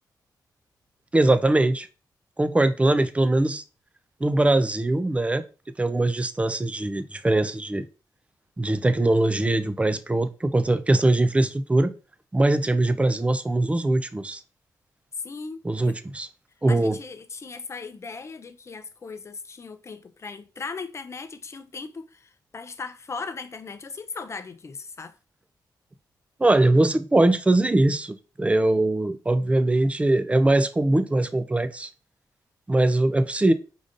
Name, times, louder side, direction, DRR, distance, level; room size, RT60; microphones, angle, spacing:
voice 1, 1.1-1.9 2.4-3.6 4.2-5.4 5.8-7.9 8.6-11.9 12.3-14.4 15.6-16.3 16.6-17.0 26.4-31.9 32.7-33.5, right 2 dB, 15° right, 0.4 m, -21 dB
voice 2, 15.2-16.0 16.7-25.1, left 4 dB, 40° left, 0.5 m, -38 dB
5.1 x 3.8 x 2.5 m
cardioid pair, 90°, 8 cm